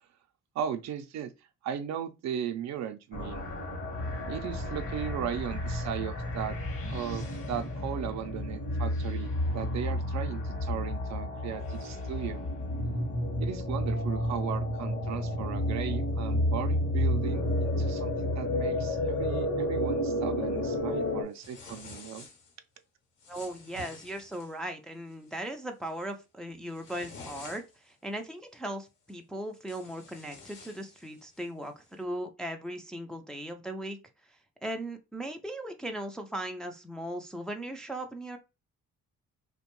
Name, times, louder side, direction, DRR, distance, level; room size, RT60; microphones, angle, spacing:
voice 1, 0.5-1.3 1.6-3.4 4.0-6.6 6.9-12.4 13.4-22.3, right 9 dB, 65° right, 0.5 m, -37 dB
sound 1, 3.1-21.2, left 1 dB, 45° left, 1.0 m, -31 dB
sound 2, 21.3-22.5 23.2-24.6 25.1-25.4 25.8-26.1 26.5-27.9 29.1-29.2 29.5-31.5, left 4 dB, 90° left, 0.9 m, -49 dB
voice 2, 23.3-34.0 34.3-38.4, right 1 dB, ahead, 0.4 m, -38 dB
2.5 x 2.2 x 2.9 m
cardioid pair, 90°, 30 cm